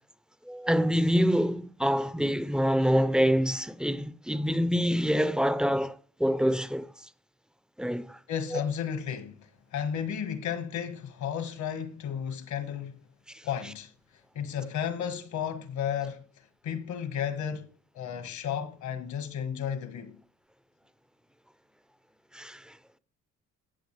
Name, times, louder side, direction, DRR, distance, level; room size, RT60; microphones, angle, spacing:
voice 1, 0.5-6.9 7.8-8.2 8.5-8.6 13.3-13.4 22.3-22.8, equal, 5° right, 0.6 m, -26 dB
voice 2, 8.3-13.0 13.4-13.9 14.3-16.2 16.6-17.7 17.9-20.2, left 8 dB, 70° left, 1.6 m, -33 dB
14.5 x 7.8 x 3.3 m
cardioid pair, 90°, 30 cm